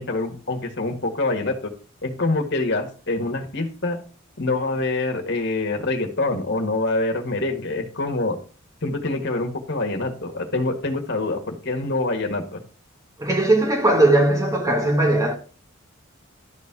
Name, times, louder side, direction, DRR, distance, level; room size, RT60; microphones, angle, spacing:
voice 1, 0.0-1.7 2.0-4.0 4.4-8.4 8.8-12.6, left 2 dB, 55° left, 1.8 m, -25 dB
voice 2, 13.2-15.4, right 2 dB, 15° right, 1.3 m, -18 dB
12.0 x 4.2 x 6.0 m
head